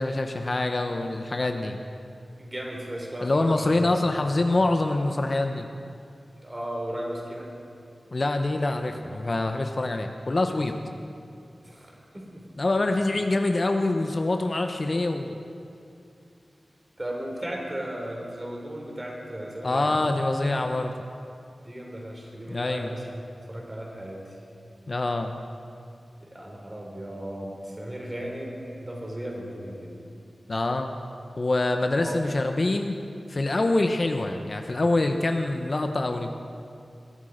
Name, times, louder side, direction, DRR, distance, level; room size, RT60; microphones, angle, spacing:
voice 1, 0.0-1.8 3.2-5.7 8.1-10.8 12.6-15.4 19.6-20.9 22.5-22.9 24.9-25.3 30.5-30.9 31.4-33.0 33.3-36.3, left 2 dB, 40° left, 5 dB, 0.8 m, -25 dB
voice 2, 2.4-4.1 6.4-7.5 11.6-12.4 13.0-13.1 17.0-20.0 21.6-23.1 23.5-24.4 26.2-29.9 32.0-32.2, right 1 dB, 20° right, -1 dB, 3.4 m, -36 dB
21.0 x 13.0 x 5.1 m, 2.5 s
wide cardioid pair, 105°, 0 cm